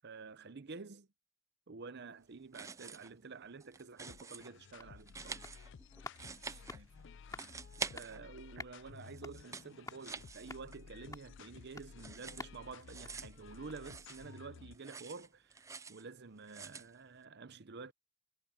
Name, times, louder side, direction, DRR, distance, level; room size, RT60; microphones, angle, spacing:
voice 1, 0.0-1.1 1.7-5.5 7.9-17.9, right 4 dB, 55° right, 0.7 m, -50 dB
sound 1, 2.4-3.2 3.5-4.5 5.0-7.0 7.3-8.5 8.9-11.0 11.3-14.4 14.7-16.0 16.4-16.9, right 5 dB, 15° right, 0.4 m, -47 dB
sound 2, 4.1-14.9, left 6 dB, 60° left, 0.4 m, -55 dB
sound 3, 4.7-14.0 14.3-14.4, left 3 dB, 15° left, 2.7 m, -54 dB
voice 2, 6.3-8.1, right 4 dB, 75° right, 1.3 m, -67 dB
head